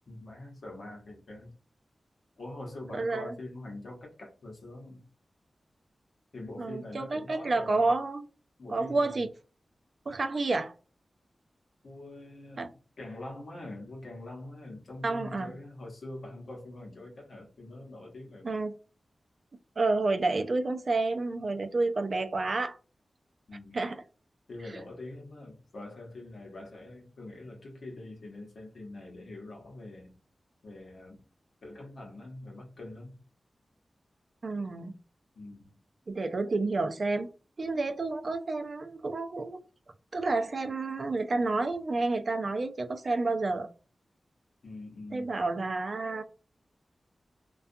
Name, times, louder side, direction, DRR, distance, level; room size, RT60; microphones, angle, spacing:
voice 1, 0.1-1.6 2.4-5.0 6.3-7.9 8.6-9.3 11.8-18.6 23.5-23.9 24.5-30.2 30.6-31.2 31.6-33.2 35.3-35.7 44.6-45.4, left 2 dB, 80° left, 0.9 m, -44 dB
voice 2, 2.9-3.3 6.6-8.3 8.7-9.3 10.1-10.7 12.6-12.7 15.0-15.5 18.4-18.7 19.8-22.8 23.7-24.0 34.4-34.9 36.1-37.3 37.6-39.6 40.1-43.7 45.1-46.2, right 3 dB, 65° right, 0.4 m, -29 dB
2.3 x 2.3 x 2.6 m
cardioid pair, 45°, 0 cm